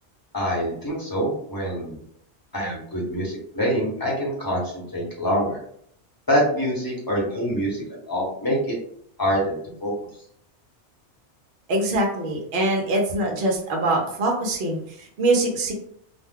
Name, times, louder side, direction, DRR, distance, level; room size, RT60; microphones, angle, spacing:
voice 1, 0.3-2.0 2.5-5.6 6.3-8.8 9.2-9.9, equal, 20° left, -4 dB, 0.8 m, -25 dB
voice 2, 11.7-15.7, right 2 dB, 60° right, 1 dB, 0.8 m, -23 dB
2.5 x 2.2 x 3.4 m, 0.67 s
omnidirectional pair, 1.2 m